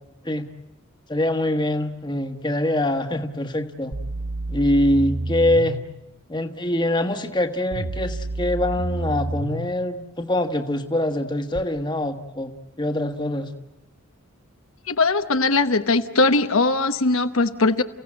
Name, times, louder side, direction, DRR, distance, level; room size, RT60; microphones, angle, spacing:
voice 1, 1.1-3.9 4.5-5.8 6.3-12.5 12.8-13.5, left 1 dB, 20° left, 6 dB, 1.3 m, -24 dB
sound 1, 3.9-5.9 7.7-9.7 11.6-11.7, right 2 dB, 85° right, 1.1 m, -29 dB
voice 2, 14.9-17.8, left 3 dB, 70° left, 8 dB, 1.0 m, -20 dB
30.0 x 16.5 x 8.7 m, 0.96 s
head